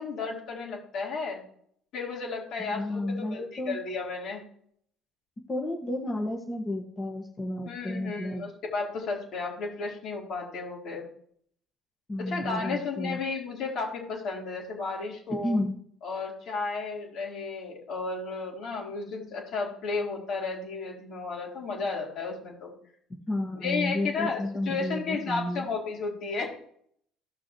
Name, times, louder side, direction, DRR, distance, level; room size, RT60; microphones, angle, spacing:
voice 1, 0.0-1.4 1.9-4.4 7.7-11.0 12.2-15.6 16.0-22.7 23.6-26.5, left 4 dB, 60° left, -2 dB, 4.2 m, -33 dB
voice 2, 2.7-3.8 5.5-8.4 12.1-13.2 15.3-15.8 23.3-25.7, left 1 dB, 25° left, -1 dB, 1.7 m, -32 dB
16.5 x 6.1 x 3.2 m, 0.65 s
supercardioid pair, 80°, 0 cm